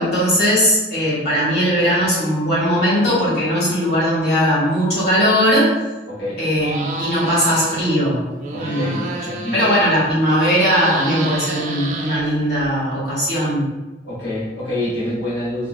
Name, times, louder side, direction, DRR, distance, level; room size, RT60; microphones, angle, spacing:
voice 1, 0.0-5.7 6.4-8.2 8.6-9.0 9.5-13.7, equal, 60° left, -7 dB, 1.4 m, -18 dB
voice 2, 6.1-6.4 8.5-9.6 14.0-15.7, left 1 dB, 85° left, -10 dB, 1.2 m, -26 dB
sound 1, 6.6-8.0 8.3-10.1 10.4-12.7, right 3 dB, 45° right, 0.4 m, -29 dB
3.7 x 2.2 x 2.4 m, 1.1 s
head